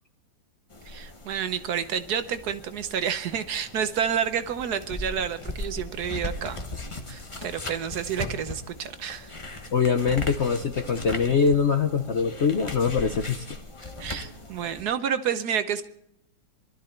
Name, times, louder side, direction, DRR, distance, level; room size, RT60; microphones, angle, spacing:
sound 1, 0.7-14.8, left 2 dB, 20° left, 1.0 m, -38 dB
voice 1, 0.9-6.6 7.1-9.3 14.0-15.9, right 8 dB, 65° right, 11 dB, 1.3 m, -29 dB
voice 2, 9.7-13.6, left 6 dB, 55° left, 7 dB, 0.8 m, -23 dB
21.5 x 12.5 x 4.4 m, 0.77 s
omnidirectional pair, 2.0 m